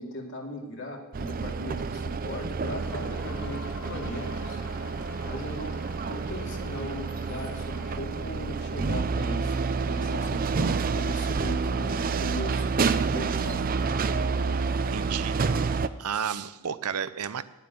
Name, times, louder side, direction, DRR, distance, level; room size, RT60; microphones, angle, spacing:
voice 1, 0.0-4.6 5.2-5.8 6.1-13.6, left 1 dB, 60° left, 0 dB, 2.4 m, -38 dB
sound 1, 1.1-15.9, right 4 dB, 40° right, 0.5 m, -29 dB
sound 2, 2.8-7.9, left 4 dB, 75° left, 1.2 m, -46 dB
voice 2, 14.9-17.4, right 7 dB, 85° right, 14 dB, 0.6 m, -33 dB
9.6 x 8.1 x 9.5 m, 1.0 s
head